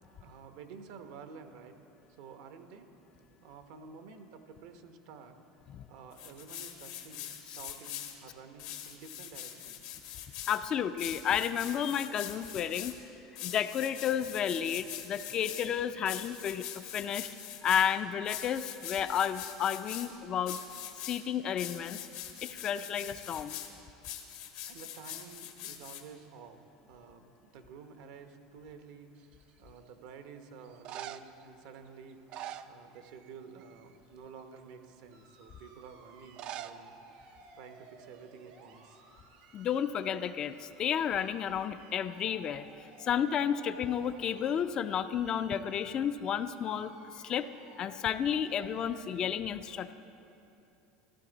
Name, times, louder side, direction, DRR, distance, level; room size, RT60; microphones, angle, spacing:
voice 1, 0.2-1.8 2.2-2.9 3.4-5.4 5.9-9.9 24.7-29.1 29.6-32.2 32.6-36.9 37.2-39.0, right 6 dB, 70° right, 7 dB, 0.9 m, -51 dB
sound 1, 6.1-8.1 8.6-10.6 11.0-12.9 13.4-15.7 16.0-17.9 18.2-20.1 20.5-21.2 21.6-23.7 24.0-26.0, left 11 dB, 75° left, 1.2 m, -43 dB
voice 2, 10.5-12.9 13.4-17.3 17.6-20.6 21.0-22.1 22.4-23.5 39.5-42.7 43.0-47.5 47.8-49.9, left 8 dB, 40° left, 11 dB, 0.4 m, -32 dB
saz white naped crane, 29.2-29.7 30.6-31.4 32.1-33.3 33.6-34.0 34.6-34.7 36.2-36.8 37.1-37.2 37.4-37.5 38.2-38.5 38.7-39.9 43.9-44.5, right 11 dB, 50° right, 0.4 m, -45 dB
sound 2, 35.1-49.2, right 4 dB, 90° right, 1.6 m, -57 dB
15.0 x 11.5 x 3.9 m, 3.0 s
supercardioid pair, 120°, 2 cm